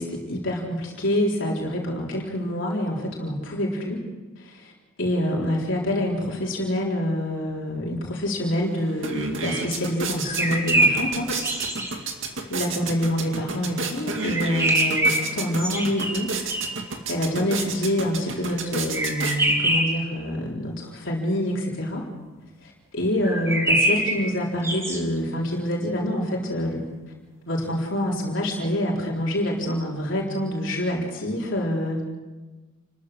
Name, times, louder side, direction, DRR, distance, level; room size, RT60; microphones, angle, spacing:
voice 1, 0.0-4.0 4.4-4.7 5.0-11.3 12.5-16.3 17.1-22.1 22.6-26.8 27.5-32.0, left 1 dB, 65° left, -3 dB, 3.9 m, -26 dB
sound 1, 8.5-8.6 8.9-19.8, right 4 dB, 65° right, 2.4 m, -32 dB
sound 2, 10.2-11.9 14.2-16.9 18.9-20.1 23.2-25.0, right 1 dB, 15° right, 2.3 m, -24 dB
29.5 x 14.0 x 6.4 m, 1.2 s
head